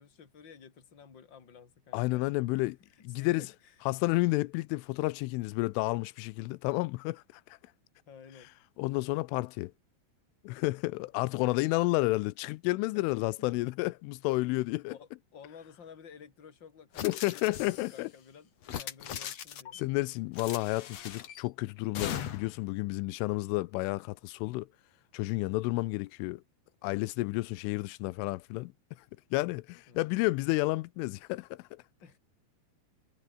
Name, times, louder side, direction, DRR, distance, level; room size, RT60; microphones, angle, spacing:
voice 1, 0.0-2.3 3.1-4.0 8.1-8.5 12.9-13.1 13.4-13.5 14.9-19.8 29.9-30.3 32.0-32.2, left 6 dB, 25° left, 3.0 m, -53 dB
voice 2, 1.9-2.8 3.0-3.4 3.9-7.4 8.8-9.7 10.4-15.0 17.0-18.1 19.8-24.7 25.1-26.4 26.8-28.7 29.3-31.8, left 22 dB, 90° left, 3.2 m, -31 dB
sound 1, 16.9-18.0 18.6-19.8 20.3-21.4 21.9-22.6, left 9 dB, 70° left, 1.5 m, -39 dB
omnidirectional pair, 5.6 m